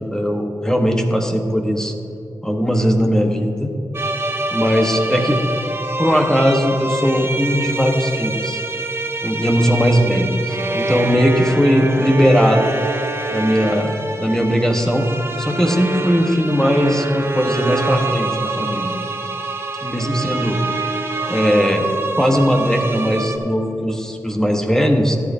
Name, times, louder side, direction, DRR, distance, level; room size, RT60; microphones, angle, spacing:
voice 1, 0.0-1.9 2.4-3.7 4.5-5.4 6.0-8.6 9.2-12.7 13.3-15.1 15.4-19.0 19.8-20.6 21.3-21.9 22.2-25.2, equal, 10° left, 2 dB, 1.3 m, -18 dB
sound 1, 3.9-23.4, right 2 dB, 35° right, 0.9 m, -25 dB
14.5 x 10.0 x 2.8 m, 2.7 s
cardioid pair, 55°, 7 cm